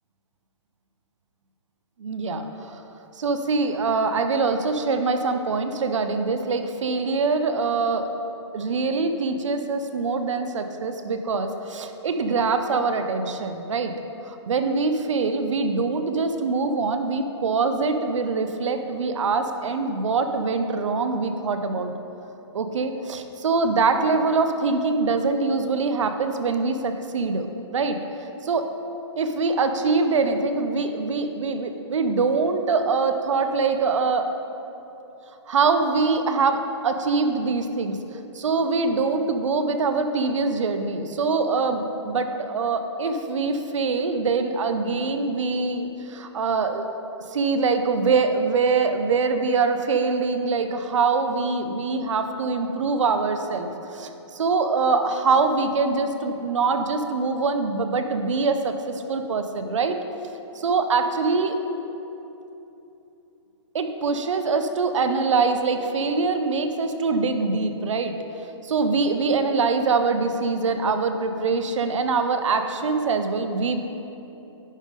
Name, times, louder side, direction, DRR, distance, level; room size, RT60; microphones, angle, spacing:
voice 1, 2.0-2.8 3.2-8.1 8.5-13.9 14.2-21.9 22.5-27.5 27.7-28.0 28.4-28.7 29.2-34.3 35.5-38.0 38.3-46.8 47.3-60.0 60.6-61.6 63.7-68.1 68.6-73.8, right 4 dB, 85° right, 8 dB, 0.7 m, -24 dB
10.5 x 3.7 x 5.1 m, 3.0 s
hypercardioid pair, 175°, 15 cm